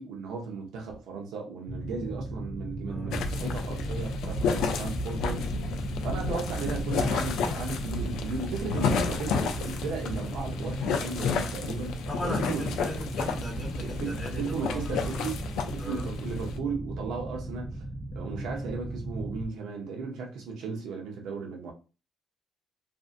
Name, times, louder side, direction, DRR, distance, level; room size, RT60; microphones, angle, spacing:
voice 1, 0.0-5.5 6.0-12.6 13.8-15.4 15.6-17.8 18.1-21.7, right 4 dB, 85° right, 0.7 m, -36 dB
sound 1, 1.7-19.4, right 1 dB, 5° right, 1.0 m, -37 dB
voice 2, 2.9-3.3 4.5-4.8 12.1-15.3 15.8-16.1, equal, 15° left, 1.3 m, -38 dB
sound 2, 3.1-16.6, left 4 dB, 80° left, 0.4 m, -31 dB
2.6 x 2.4 x 2.5 m
cardioid pair, 135°, 0 cm